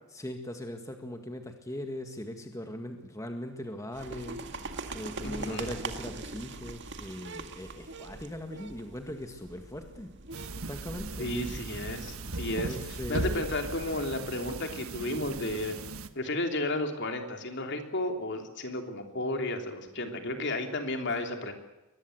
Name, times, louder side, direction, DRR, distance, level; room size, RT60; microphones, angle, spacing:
voice 1, 0.1-4.4 4.9-10.1 10.7-11.3 12.5-13.4 21.1-21.2, left 1 dB, 15° left, 5 dB, 1.9 m, -40 dB
sound 1, 3.9-13.6, right 3 dB, 55° right, 2.1 m, -43 dB
voice 2, 5.2-5.7 11.2-12.8 13.1-15.7 16.1-21.5, left 1 dB, 55° left, 5 dB, 3.4 m, -33 dB
sound 2, 10.3-16.1, right 2 dB, 80° right, 1.5 m, -38 dB
23.0 x 20.0 x 8.0 m, 1.0 s
head